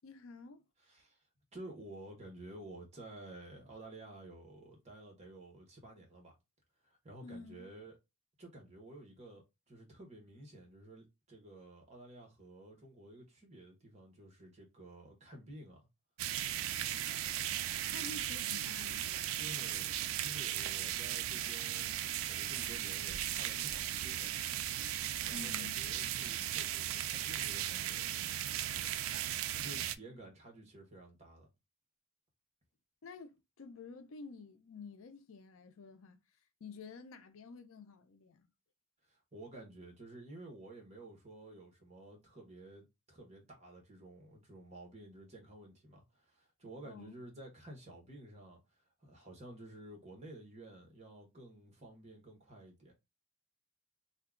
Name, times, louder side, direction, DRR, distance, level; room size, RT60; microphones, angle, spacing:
voice 1, 0.0-0.6 7.2-7.7 17.7-19.4 25.3-25.8 33.0-36.2 36.6-38.5 46.8-47.2, left 4 dB, 65° left, 0.4 m, -50 dB
voice 2, 0.8-1.2 1.5-6.3 6.8-8.0 8.4-15.9 19.4-24.5 24.9-28.1 29.5-31.5 39.0-52.9, right 1 dB, 30° right, 1.2 m, -52 dB
sound 1, 16.2-30.0, right 12 dB, 65° right, 0.3 m, -37 dB
2.8 x 2.3 x 3.6 m
head